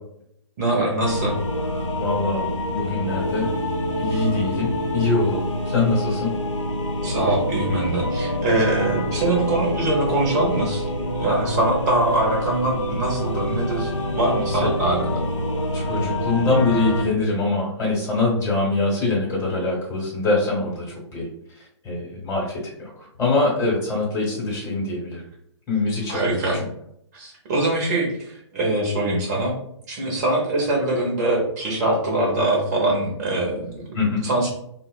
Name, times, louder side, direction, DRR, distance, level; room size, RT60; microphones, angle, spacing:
voice 1, 0.6-1.3 7.0-10.8 11.1-15.1 26.1-26.6 27.1-29.5 29.9-33.9 34.2-34.5, right 2 dB, 35° right, -1 dB, 0.6 m, -23 dB
sound 1, 1.0-17.0, left 1 dB, 85° left, 0.5 m, -26 dB
voice 2, 2.0-3.5 4.0-6.3 14.5-14.6 15.7-21.3 21.8-25.2 25.7-26.4 33.9-34.2, left 3 dB, 15° left, -4 dB, 0.9 m, -23 dB
2.8 x 2.0 x 2.2 m, 0.74 s
figure-of-eight pair, 130°, 15 cm